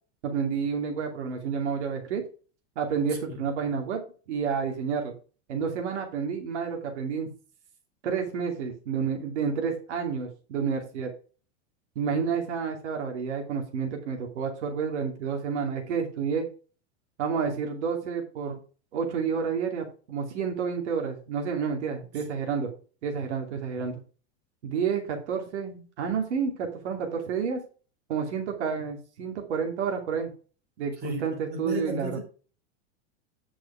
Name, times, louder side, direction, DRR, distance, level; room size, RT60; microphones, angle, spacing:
voice 1, 0.2-2.2 2.8-4.0 4.3-5.2 5.5-7.3 8.0-11.1 12.0-16.5 17.2-18.6 18.9-22.7 23.0-24.0 24.6-27.6 28.1-30.3 30.8-32.2, right 6 dB, 85° right, 2.8 m, -30 dB
voice 2, 31.5-32.2, equal, 30° right, 4.7 m, -33 dB
9.4 x 6.1 x 4.9 m
supercardioid pair, 145°, 34 cm